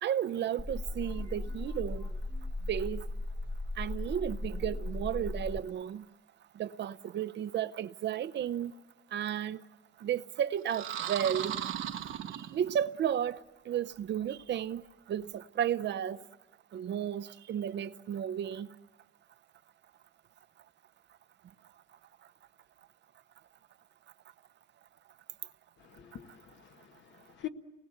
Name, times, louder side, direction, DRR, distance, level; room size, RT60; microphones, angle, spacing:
voice 1, 0.0-2.1 2.7-3.1 3.7-6.1 6.5-8.8 9.1-9.6 10.0-11.6 12.3-16.2 16.7-18.8 21.4-21.5 22.2-22.3 25.4-25.5, right 9 dB, 65° right, 0.7 m, -33 dB
sound 1, 0.6-5.6, left 2 dB, 10° left, 0.9 m, -37 dB
sound 2, 10.7-13.0, right 10 dB, 80° right, 1.2 m, -37 dB
voice 2, 25.8-27.5, left 13 dB, 65° left, 1.5 m, -45 dB
29.5 x 20.0 x 8.1 m
cardioid pair, 90°, 20 cm